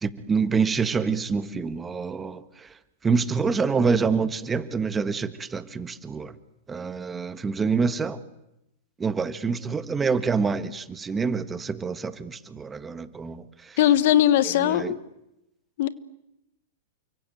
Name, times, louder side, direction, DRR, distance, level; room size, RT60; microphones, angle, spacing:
voice 1, 0.0-2.7 3.0-6.3 6.7-8.2 9.0-13.8 14.7-14.9, right 5 dB, 15° right, 1.7 m, -26 dB
voice 2, 13.8-15.0 15.8-15.9, left 12 dB, 60° left, 1.3 m, -20 dB
29.5 x 24.5 x 7.9 m
hypercardioid pair, 110°, 0 cm